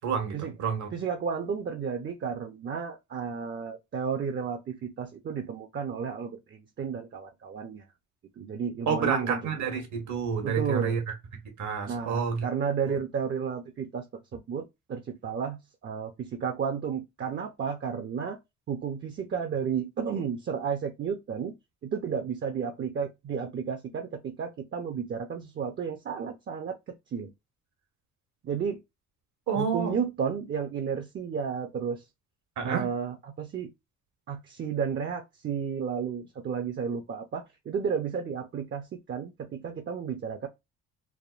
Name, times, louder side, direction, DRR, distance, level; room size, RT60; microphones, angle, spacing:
voice 1, 0.0-0.9 8.9-11.0 11.6-12.4 12.9-13.0 29.5-29.9 32.6-32.9, right 6 dB, 70° right, 1.1 m, -29 dB
voice 2, 0.9-7.8 8.4-9.5 10.4-11.0 11.9-18.4 18.7-21.5 21.8-27.3 28.4-28.8 29.5-32.0 32.6-33.7 34.3-40.5, right 6 dB, 40° right, 0.5 m, -32 dB
3.4 x 2.1 x 2.3 m
cardioid pair, 90°, 30 cm